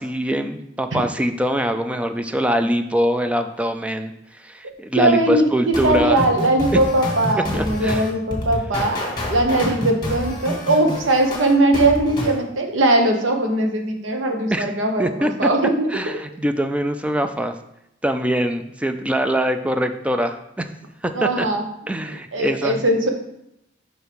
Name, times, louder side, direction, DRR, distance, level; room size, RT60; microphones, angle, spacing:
voice 1, 0.0-4.1 4.4-6.3 6.7-6.8 7.5-8.1 8.7-8.8 14.5-14.7 15.0-15.3 15.9-17.6 18.0-20.7 21.0-21.5 21.9-22.8, equal, 5° right, 7 dB, 0.3 m, -23 dB
voice 2, 5.0-15.9 21.1-21.6 22.3-23.1, right 1 dB, 75° right, 3 dB, 1.0 m, -20 dB
sound 1, 5.7-12.4, left 1 dB, 25° left, 1.6 m, -28 dB
5.4 x 4.7 x 5.0 m, 0.81 s
head